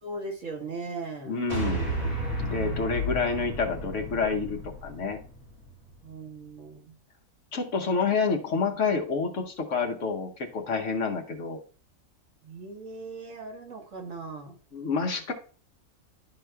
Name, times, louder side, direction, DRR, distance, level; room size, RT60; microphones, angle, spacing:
voice 1, 0.0-1.4 6.0-6.9 12.4-14.6, right 3 dB, 60° right, 1 dB, 1.7 m, -38 dB
voice 2, 1.3-1.9 2.4-5.2 7.5-11.6 14.7-15.3, left 4 dB, 60° left, 3 dB, 1.1 m, -28 dB
sound 1, 1.5-5.9, right 1 dB, 30° right, 2.8 m, -33 dB
11.5 x 4.9 x 2.2 m, 0.40 s
omnidirectional pair, 1.5 m